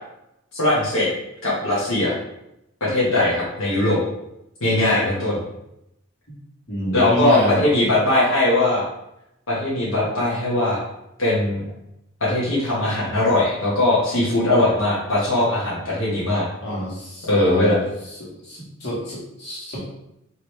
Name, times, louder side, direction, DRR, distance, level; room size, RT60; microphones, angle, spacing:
voice 1, 0.5-1.1 1.4-2.1 2.8-4.0 4.6-5.4 6.9-8.8 9.5-10.8 11.2-11.6 12.2-16.5 17.2-17.8, left 2 dB, 80° left, -6 dB, 1.1 m, -20 dB
voice 2, 6.7-7.7 16.6-17.8 18.2-19.8, equal, 50° left, -6 dB, 1.6 m, -27 dB
4.7 x 3.0 x 3.2 m, 0.84 s
head